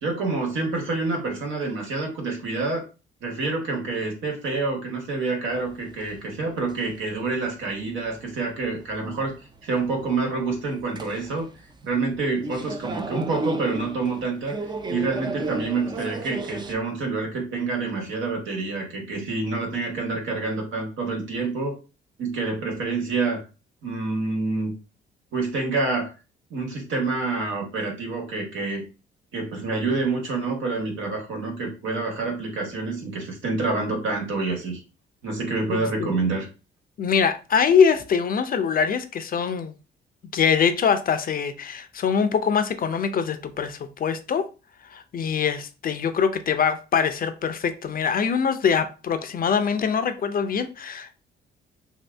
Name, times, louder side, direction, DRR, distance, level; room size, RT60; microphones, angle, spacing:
voice 1, 0.0-2.8 3.2-9.3 9.6-11.5 11.8-14.5 14.9-21.7 22.2-23.4 23.8-24.7 25.3-26.1 26.5-28.8 29.3-34.8 35.2-36.5, right 3 dB, 75° right, 1.3 m, -27 dB
sound 1, 5.5-16.7, right 2 dB, 20° right, 0.4 m, -36 dB
voice 2, 35.7-36.1 37.0-39.7 40.3-44.4 44.9-51.1, left 6 dB, 45° left, 0.5 m, -23 dB
2.7 x 2.6 x 3.3 m
cardioid pair, 90°, 20 cm